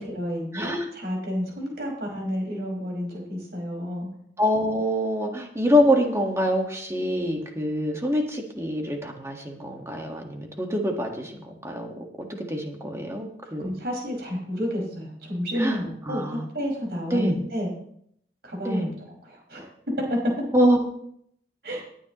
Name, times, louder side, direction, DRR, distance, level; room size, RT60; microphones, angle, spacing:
voice 1, 0.0-4.1 13.5-17.7 18.4-18.9 19.3-19.7 20.1-20.2 21.6-21.8, equal, 60° right, -1 dB, 5.4 m, -30 dB
voice 2, 0.5-0.9 4.4-11.9 12.2-13.7 15.6-16.5 17.1-17.4 18.6-18.9 20.5-20.8, equal, 15° right, 2 dB, 1.6 m, -25 dB
19.0 x 9.5 x 3.1 m, 0.68 s
head